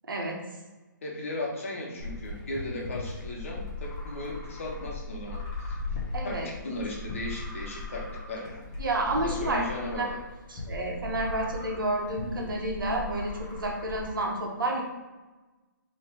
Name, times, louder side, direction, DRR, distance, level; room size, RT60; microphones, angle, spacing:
voice 1, 0.1-0.4 6.1-6.5 8.8-9.6 9.9-10.1 10.5-14.8, right 2 dB, 85° right, 0 dB, 1.3 m, -30 dB
voice 2, 1.0-5.4 5.7-5.8 6.2-8.7 9.2-10.2, left 1 dB, 40° left, -2 dB, 1.0 m, -36 dB
sound 1, 2.0-14.1, left 3 dB, 15° left, 0.7 m, -38 dB
3.4 x 3.1 x 4.4 m, 1.2 s
hypercardioid pair, 175°, 11 cm